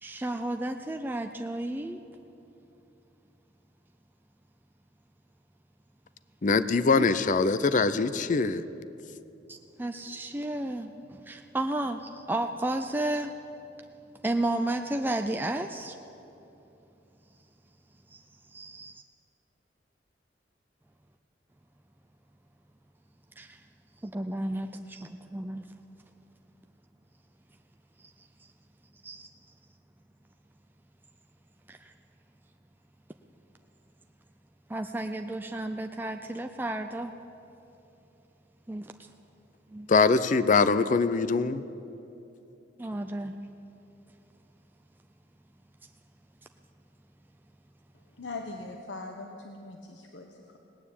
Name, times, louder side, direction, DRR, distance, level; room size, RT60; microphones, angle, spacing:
voice 1, 0.0-2.0 7.0-7.1 9.5-13.3 14.2-16.0 18.1-18.2 18.5-19.0 23.4-23.6 24.0-25.7 28.4-28.5 29.0-29.3 31.7-31.9 34.7-37.1 38.7-38.9 39.7-39.9 42.8-43.3, right 1 dB, 10° right, 5 dB, 0.4 m, -32 dB
voice 2, 6.4-8.6 39.9-41.6, left 4 dB, 45° left, 14 dB, 0.5 m, -23 dB
voice 3, 48.1-50.6, left 3 dB, 80° left, 3 dB, 1.0 m, -41 dB
18.0 x 9.4 x 8.4 m, 3.0 s
head